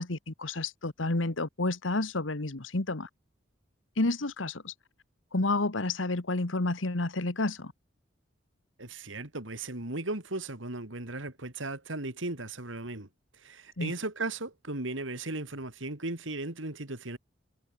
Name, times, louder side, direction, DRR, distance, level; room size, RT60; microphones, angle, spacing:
voice 1, 0.0-3.1 4.0-4.8 5.3-7.7 13.8-13.9, left 2 dB, 90° left, 1.8 m, -30 dB
voice 2, 8.8-13.1 13.4-17.2, right 2 dB, 80° right, 3.3 m, -36 dB
head